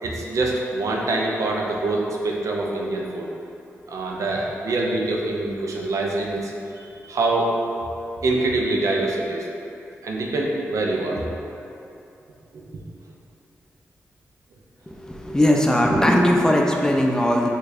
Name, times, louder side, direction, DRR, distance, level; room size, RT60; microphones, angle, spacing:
voice 1, 0.0-3.3 3.9-6.5 6.8-7.5 8.2-9.5 10.0-11.6 12.5-12.6, right 2 dB, 70° right, -1 dB, 0.4 m, -25 dB
voice 2, 15.1-17.5, left 1 dB, 10° left, 0 dB, 0.4 m, -19 dB
4.5 x 2.3 x 2.6 m, 2.7 s
cardioid pair, 50°, 6 cm